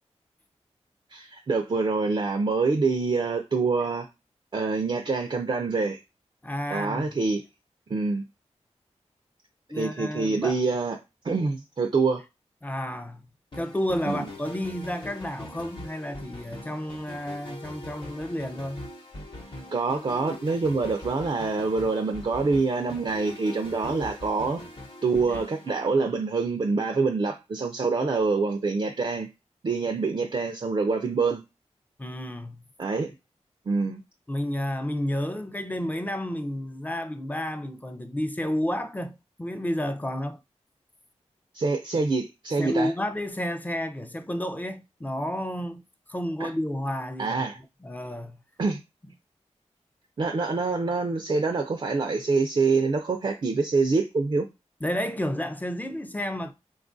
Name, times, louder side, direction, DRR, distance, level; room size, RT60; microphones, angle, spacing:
voice 1, 1.1-4.1 4.5-6.0 6.7-7.4 7.9-8.2 9.7-11.0 11.2-12.2 14.0-14.2 19.7-24.6 25.0-29.3 29.6-31.4 32.8-33.1 33.7-34.0 41.5-42.9 46.4-46.5 47.2-47.6 48.6-48.8 50.2-54.5, right 4 dB, 45° right, 0.4 m, -26 dB
voice 2, 6.4-7.1 9.7-10.6 12.6-13.2 13.5-18.8 32.0-32.6 34.3-40.4 42.6-45.8 46.1-47.4 47.8-48.4 54.8-56.5, left 1 dB, 15° left, 0.4 m, -31 dB
sound 1, 13.5-26.4, left 1 dB, 45° left, 0.8 m, -42 dB
3.4 x 2.3 x 2.5 m
wide cardioid pair, 65°, 12 cm